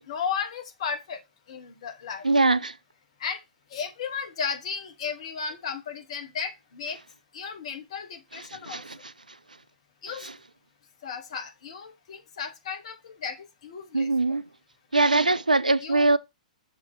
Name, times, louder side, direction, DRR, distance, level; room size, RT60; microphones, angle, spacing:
voice 1, 0.1-1.2 1.5-2.3 3.2-3.4 3.7-7.0 7.3-8.8 10.0-10.3 11.0-14.4 15.8-16.1, left 6 dB, 50° left, 1.1 m, -34 dB
voice 2, 2.2-2.7 8.7-9.0 10.2-10.3 13.9-14.4 14.9-16.2, right 2 dB, 85° right, 0.4 m, -22 dB
6.7 x 2.9 x 5.5 m
figure-of-eight pair, 110°, 4 cm